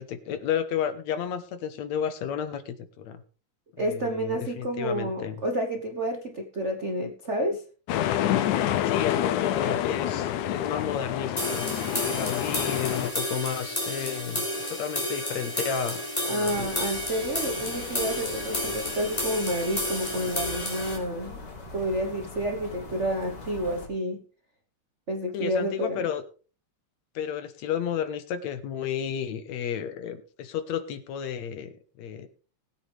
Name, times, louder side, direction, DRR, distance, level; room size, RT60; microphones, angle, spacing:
voice 1, 0.0-3.2 3.7-5.4 8.8-16.7 18.6-18.8 25.3-26.2 27.2-32.3, left 8 dB, 70° left, 11 dB, 2.4 m, -32 dB
voice 2, 3.8-7.6 16.3-21.4 21.7-24.2 25.1-26.0, equal, 50° right, 4 dB, 0.8 m, -30 dB
sound 1, 7.9-13.1, left 11 dB, 90° left, 2.3 m, -27 dB
sound 2, 11.4-21.0, left 1 dB, 10° left, 4.1 m, -31 dB
sound 3, 16.4-23.9, left 3 dB, 50° left, 4.9 m, -42 dB
20.0 x 8.6 x 3.4 m, 0.37 s
omnidirectional pair, 3.3 m